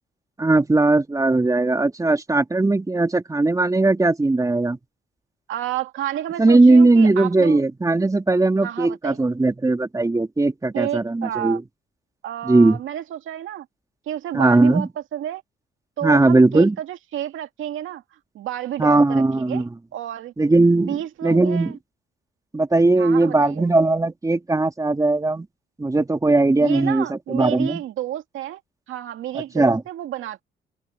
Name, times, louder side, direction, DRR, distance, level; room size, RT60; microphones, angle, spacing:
voice 1, 0.4-4.8 6.4-11.6 12.5-12.8 14.3-14.9 16.0-16.8 18.8-19.7 20.4-21.7 22.5-25.5 25.8-27.8 29.5-29.8, right 2 dB, 15° right, 2.9 m, -18 dB
voice 2, 5.5-7.6 8.6-9.2 10.7-11.6 12.2-13.7 14.1-15.4 16.0-18.0 18.3-19.6 19.9-20.3 20.8-21.8 23.0-23.7 26.6-28.6 28.9-30.4, right 11 dB, 80° right, 2.4 m, -30 dB
open air
cardioid pair, 90°, 20 cm